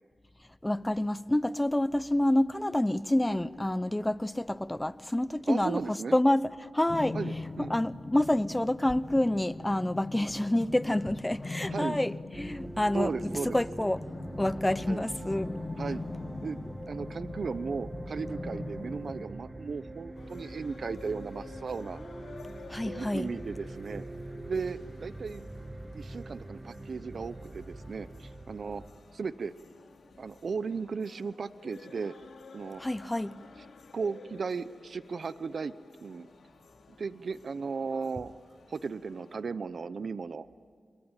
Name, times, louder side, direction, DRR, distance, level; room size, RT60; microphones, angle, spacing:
voice 1, 0.6-7.2 7.6-14.0 14.4-15.5 22.7-23.3 32.8-33.3, left 1 dB, 15° left, 0.9 m, -28 dB
voice 2, 5.5-6.2 7.1-7.7 11.7-12.0 12.9-13.6 14.9-15.0 15.8-16.0 16.4-22.0 22.8-24.1 24.5-25.4 25.9-28.8 29.1-29.5 30.2-32.1 32.5-32.8 33.9-35.7 36.0-36.3 37.0-38.3 38.7-40.5, right 5 dB, 70° right, 0.7 m, -36 dB
sound 1, 6.9-19.2, left 3 dB, 45° left, 1.1 m, -41 dB
sound 2, 12.3-28.9, right 2 dB, 25° right, 2.1 m, -43 dB
sound 3, 20.1-39.4, left 4 dB, 85° left, 2.7 m, -53 dB
28.0 x 22.0 x 9.0 m
cardioid pair, 50°, 0 cm